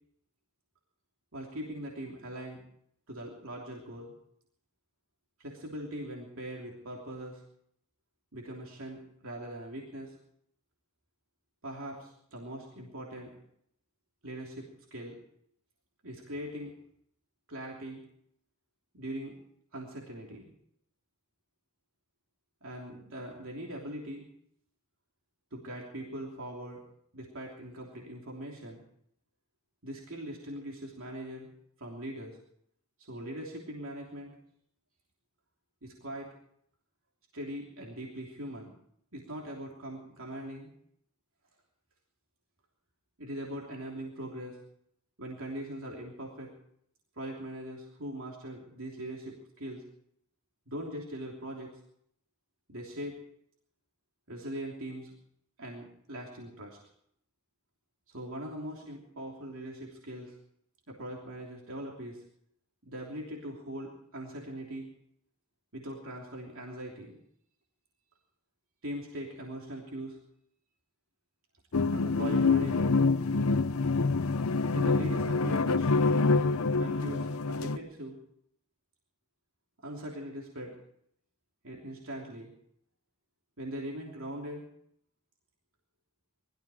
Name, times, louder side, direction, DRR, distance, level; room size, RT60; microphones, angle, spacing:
voice 1, 1.3-2.6 3.1-4.1 5.4-7.4 8.3-10.1 11.6-13.4 14.2-15.2 16.0-16.7 17.5-18.0 18.9-19.4 19.7-20.5 22.6-24.3 25.5-26.8 27.1-28.8 29.8-31.5 31.8-32.4 33.0-34.3 35.8-36.3 37.3-38.7 39.1-40.7 43.2-44.6 45.2-46.5 47.1-49.8 50.7-51.7 52.7-53.2 54.3-55.1 55.6-56.8 58.1-60.3 60.9-62.2 62.8-64.9 65.7-67.2 68.8-70.2 71.9-73.0 74.7-76.0 76.8-78.2 79.8-80.8 81.6-82.5 83.6-84.7, right 1 dB, 65° right, -2 dB, 3.1 m, -41 dB
sound 1, 71.7-77.8, left 3 dB, 70° left, 0.7 m, -26 dB
20.5 x 14.0 x 4.9 m, 0.70 s
head